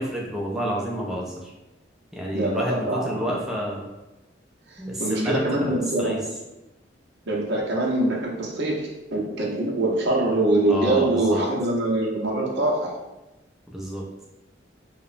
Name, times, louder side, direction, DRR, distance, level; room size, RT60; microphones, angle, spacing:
voice 1, 0.0-1.5 2.1-3.8 4.8-5.7 6.0-6.2 10.7-11.4 13.7-14.0, equal, ahead, -3 dB, 0.3 m, -29 dB
voice 2, 2.3-3.2 4.7-6.1 7.3-13.0, right 2 dB, 65° right, -3 dB, 0.6 m, -24 dB
2.8 x 2.0 x 2.4 m, 1.0 s
head